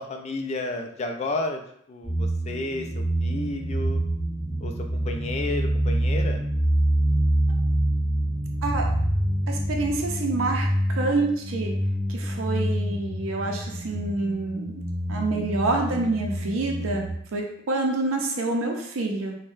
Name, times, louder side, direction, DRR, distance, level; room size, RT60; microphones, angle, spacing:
voice 1, 0.0-1.6 1.9-4.0 4.6-4.7 5.0-6.4, left 2 dB, 35° left, 4 dB, 0.3 m, -31 dB
sound 1, 2.0-17.1, right 1 dB, 5° right, 0.9 m, -26 dB
voice 2, 9.5-11.7 12.1-14.7 15.1-19.4, right 2 dB, 80° right, 1 dB, 0.5 m, -27 dB
3.3 x 2.1 x 2.6 m, 0.67 s
head